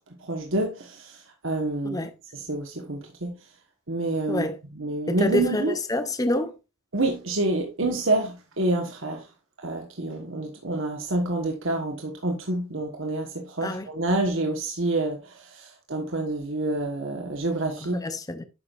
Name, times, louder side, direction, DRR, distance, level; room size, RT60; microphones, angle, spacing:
voice 1, 0.3-2.1 2.3-3.3 3.9-5.7 6.9-9.2 9.6-18.0, right 2 dB, 65° right, 1.4 m, -28 dB
voice 2, 5.1-5.6 5.9-6.5 13.6-13.9 17.9-18.4, left 2 dB, 15° left, 0.6 m, -27 dB
9.7 x 6.5 x 2.5 m
head